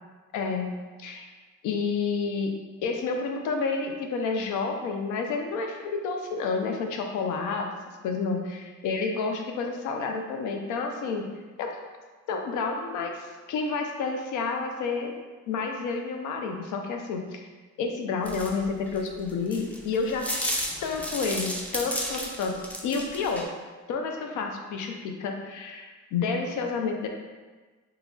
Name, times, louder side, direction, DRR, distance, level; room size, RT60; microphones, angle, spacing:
voice 1, 0.3-1.3 1.6-2.5 2.8-7.7 8.0-11.3 11.6-11.7 12.3-15.2 15.5-17.4 17.8-20.5 20.8-23.5 23.9-27.1, left 4 dB, 85° left, 3 dB, 0.5 m, -30 dB
sound 1, 18.3-23.4, equal, 5° left, 0.4 m, -33 dB
3.1 x 2.3 x 3.6 m, 1.3 s
cardioid pair, 90°, 30 cm